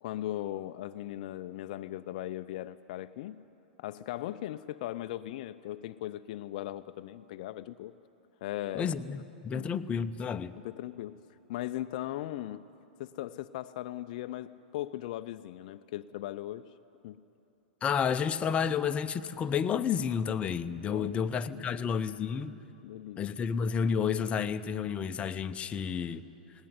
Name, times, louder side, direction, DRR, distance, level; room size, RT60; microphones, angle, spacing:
voice 1, 0.0-3.4 3.8-7.9 8.4-8.9 9.5-9.7 10.6-11.2 11.5-12.6 13.0-16.7 17.0-17.2 20.9-21.1 21.5-21.8 22.8-23.2, left 14 dB, 55° left, 11 dB, 0.5 m, -38 dB
voice 2, 8.7-10.5 17.8-22.6 23.2-26.2, left 7 dB, 25° left, 9 dB, 0.7 m, -31 dB
19.5 x 17.5 x 9.5 m, 3.0 s
hypercardioid pair, 100°, 5 cm